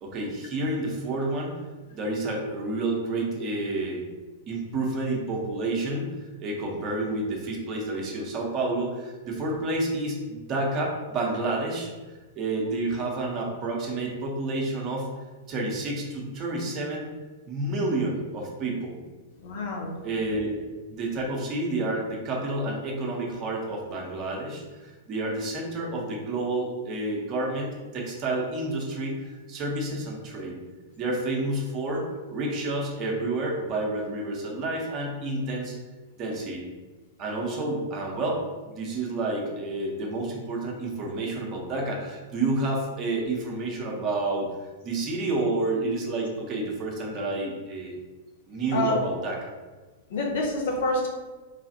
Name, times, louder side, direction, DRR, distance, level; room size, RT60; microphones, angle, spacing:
voice 1, 0.0-1.6 1.9-4.1 4.5-11.9 12.3-15.1 15.5-17.1 17.5-18.9 20.0-20.6 20.9-30.6 30.9-35.8 36.2-36.6 37.2-44.5 44.8-48.0 48.5-49.5, right 2 dB, 30° right, -1 dB, 0.8 m, -29 dB
voice 2, 19.4-20.0 48.7-49.1 50.1-51.1, left 1 dB, 55° left, 0 dB, 0.7 m, -27 dB
3.3 x 2.4 x 2.8 m, 1.3 s
figure-of-eight pair, 100°, 0 cm